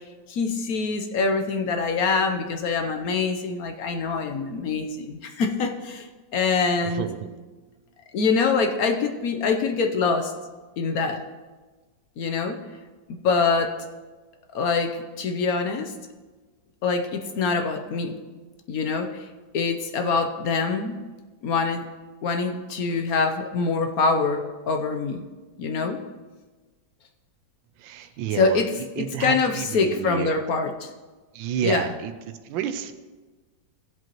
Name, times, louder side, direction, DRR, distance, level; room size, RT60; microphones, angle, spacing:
voice 1, 0.3-7.1 8.1-10.3 10.8-11.2 12.2-12.6 13.1-13.8 14.5-15.9 16.8-18.2 18.7-19.3 19.5-21.0 21.4-21.9 22.2-25.3 25.6-26.0 28.4-28.7 29.0-30.9 31.6-31.9, left 4 dB, 65° left, 6 dB, 1.0 m, -24 dB
voice 2, 6.8-7.3 27.8-30.3 31.3-32.9, right 9 dB, 85° right, 9 dB, 1.4 m, -31 dB
15.5 x 7.7 x 3.0 m, 1.3 s
omnidirectional pair, 2.0 m